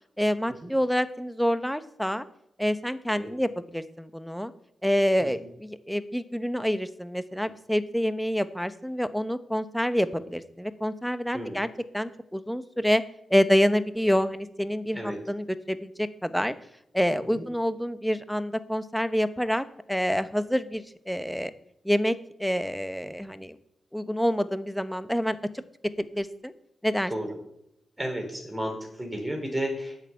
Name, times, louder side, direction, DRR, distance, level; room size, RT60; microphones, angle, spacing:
voice 1, 0.2-2.2 2.6-4.5 4.8-5.4 5.9-11.7 11.9-13.0 13.3-16.5 16.9-21.5 21.8-22.1 22.4-23.5 23.9-25.6 26.0-26.5 26.8-27.1, equal, ahead, 12 dB, 1.0 m, -27 dB
voice 2, 28.0-30.1, equal, 15° right, 2 dB, 4.7 m, -33 dB
8.9 x 6.8 x 8.7 m, 0.82 s
supercardioid pair, 50°, 0 cm